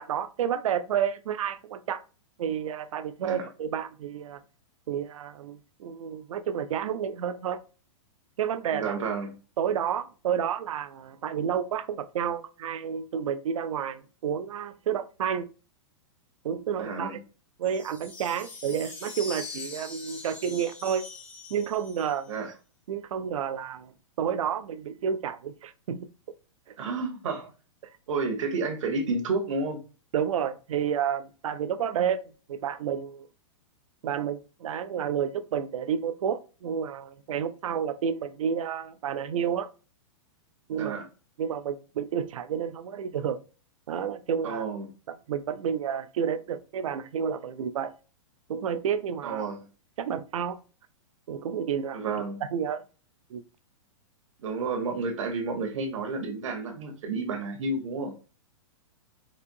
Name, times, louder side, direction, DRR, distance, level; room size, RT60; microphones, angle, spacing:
voice 1, 0.0-2.0 2.4-4.4 4.9-7.6 8.4-9.0 9.6-15.5 16.4-17.2 17.6-21.1 21.5-22.3 22.9-23.9 24.2-26.0 30.1-33.3 34.0-39.7 40.7-41.0 41.4-43.4 43.9-44.6 45.1-47.9 48.5-49.4 50.0-50.6 51.3-52.1 52.5-52.8 53.3-53.4, right 8 dB, 85° right, 0.5 m, -30 dB
voice 2, 8.7-9.3 16.8-17.2 22.3-22.5 26.8-27.5 28.1-29.8 40.7-41.0 44.4-44.9 49.2-49.6 51.9-52.4 54.4-58.1, right 3 dB, 70° right, 0.9 m, -31 dB
sound 1, 17.6-22.4, left 2 dB, 10° left, 0.4 m, -42 dB
4.1 x 2.6 x 2.6 m
supercardioid pair, 175°, 17 cm